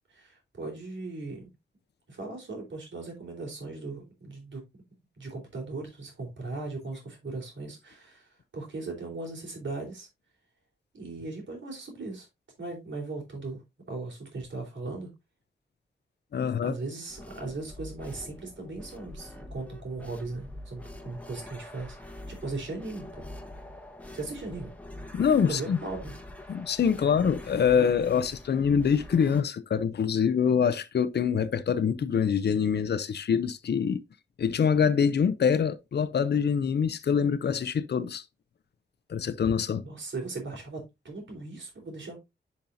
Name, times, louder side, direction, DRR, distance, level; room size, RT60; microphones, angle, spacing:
voice 1, 0.1-1.5 2.1-4.8 5.2-10.1 10.9-12.3 12.6-13.6 13.9-15.1 16.6-23.2 24.1-24.7 25.5-26.1 39.8-42.2, right 3 dB, 80° right, 3.8 m, -38 dB
voice 2, 16.3-16.7 25.1-25.8 26.5-34.0 34.4-38.2 39.1-39.8, left 7 dB, 60° left, 0.6 m, -25 dB
sound 1, 17.1-29.4, left 1 dB, 10° left, 1.2 m, -45 dB
10.5 x 5.4 x 2.6 m
wide cardioid pair, 130°, 19 cm